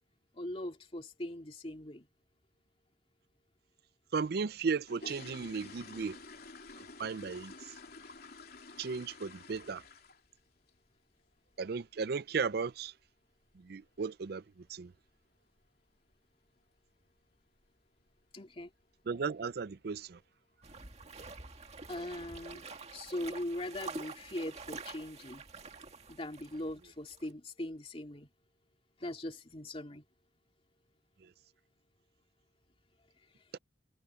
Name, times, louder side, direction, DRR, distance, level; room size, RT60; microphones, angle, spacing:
voice 1, 0.3-2.1 18.3-18.7 21.9-22.6 22.9-25.4 26.1-28.3 29.0-30.0, left 1 dB, 30° left, 2.8 m, -40 dB
voice 2, 4.1-6.2 7.0-7.5 8.8-9.8 11.6-12.9 13.6-14.4 14.7-14.9 19.1-20.2, right 5 dB, 55° right, 0.4 m, -35 dB
sound 1, 4.5-10.4 10.7-11.0 11.3-11.4 11.8-11.9 12.3-12.5 12.8-12.9 13.5-13.6 13.8-14.0 14.5-14.8 15.1-15.2 15.6-15.8 16.1-16.2 16.6-16.7 17.3-17.7 18.0-18.3 18.7-18.8 19.2-19.3 20.1-20.2 20.6-21.1 21.5-21.6, left 3 dB, 55° left, 3.3 m, -51 dB
sound 2, 20.6-26.8 27.1-27.3, right 4 dB, 35° right, 1.9 m, -47 dB
head